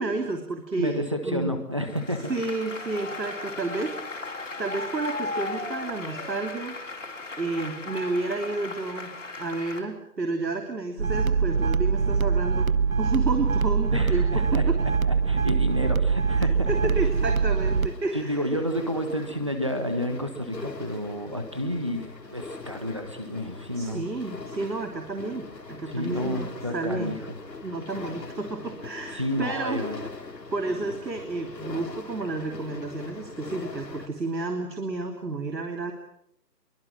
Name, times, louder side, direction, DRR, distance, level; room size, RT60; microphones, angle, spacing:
voice 1, 0.0-1.6 2.3-6.8 7.4-12.7 13.0-14.8 16.3-18.5 23.7-27.2 27.6-29.8 30.5-35.9, right 3 dB, 80° right, 4 dB, 3.3 m, -31 dB
voice 2, 0.8-2.3 13.9-16.7 18.1-24.0 25.9-27.2 29.1-30.0, equal, 20° right, 6 dB, 1.4 m, -30 dB
Applause, 1.9-9.8, left 3 dB, 50° left, 3.9 m, -36 dB
sound 1, 11.0-17.9, right 5 dB, 55° right, 0.9 m, -23 dB
sound 2, 16.9-34.1, left 3 dB, 75° left, 3.5 m, -42 dB
26.5 x 23.0 x 6.1 m, 0.76 s
figure-of-eight pair, 180°, 50 cm